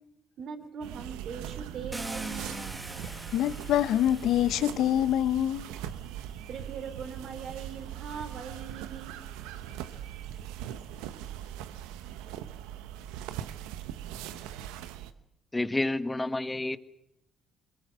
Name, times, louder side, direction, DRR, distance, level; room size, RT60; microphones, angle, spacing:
voice 1, 0.4-2.7 6.5-9.1, right 6 dB, 65° right, 3.7 m, -41 dB
sound 1, 0.8-15.1, right 10 dB, 85° right, 1.0 m, -41 dB
Car, 1.9-6.0 7.0-7.1 7.6-10.9, right 2 dB, 15° right, 1.5 m, -44 dB
voice 2, 3.1-5.7, left 11 dB, 75° left, 0.8 m, -26 dB
voice 3, 15.5-16.8, left 2 dB, 15° left, 1.3 m, -29 dB
22.0 x 20.5 x 8.1 m
hypercardioid pair, 55°, 0 cm